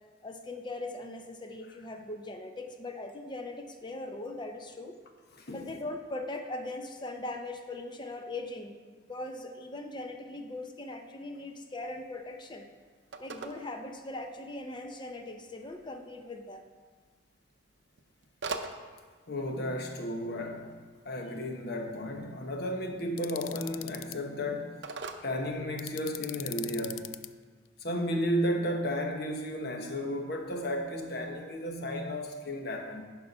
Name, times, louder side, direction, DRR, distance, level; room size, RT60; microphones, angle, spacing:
voice 1, 0.2-5.0 5.5-12.7 13.2-16.7, left 2 dB, 25° left, 5 dB, 0.6 m, -40 dB
Telephone, 11.8-26.3, right 3 dB, 60° right, 0.6 m, -47 dB
voice 2, 19.3-20.7 21.0-24.7 25.2-27.1 27.8-33.0, equal, 55° left, 3 dB, 1.0 m, -33 dB
sound 1, 23.2-24.2 25.8-27.3, left 15 dB, 85° left, 0.3 m, -40 dB
10.5 x 4.5 x 5.5 m, 1.5 s
head